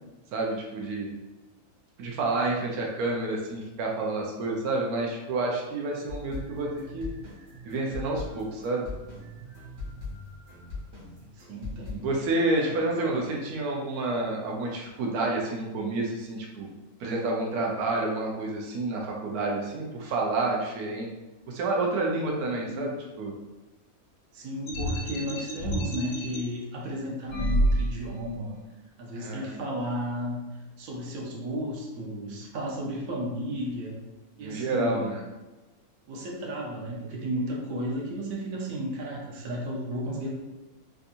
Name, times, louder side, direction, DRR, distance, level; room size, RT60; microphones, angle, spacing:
voice 1, 0.3-1.1 2.0-7.1 7.6-8.9 12.0-16.7 17.0-21.1 21.5-22.9 23.2-23.3 29.1-29.5 34.4-35.2, right 2 dB, 90° right, -1 dB, 1.1 m, -29 dB
sound 1, 6.1-11.9, left 2 dB, 50° right, 1.4 m, -40 dB
voice 2, 11.2-12.1 12.6-13.3 22.6-23.0 24.3-28.6 29.0-30.4 30.8-34.0 34.4-35.1 36.1-40.3, equal, 70° right, -2 dB, 1.1 m, -34 dB
sound 2, 24.7-26.4 27.3-28.2, equal, 75° left, 1.3 m, -28 dB
3.5 x 2.7 x 2.5 m, 1.1 s
omnidirectional pair, 1.6 m